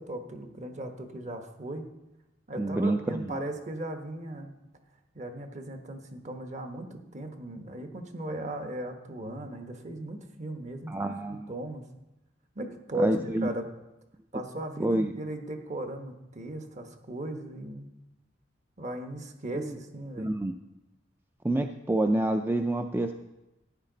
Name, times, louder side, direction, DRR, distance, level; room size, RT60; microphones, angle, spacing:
voice 1, 0.0-1.9 2.5-4.5 5.1-11.1 11.5-11.9 12.5-13.7 14.3-17.9 18.8-20.3, right 1 dB, 40° right, 5 dB, 1.2 m, -37 dB
voice 2, 2.6-3.4 10.9-11.5 13.0-13.5 14.8-15.1 19.5-19.8 20.2-20.5 21.4-23.1, right 1 dB, 10° right, 6 dB, 0.4 m, -28 dB
14.0 x 9.9 x 3.9 m, 0.97 s
head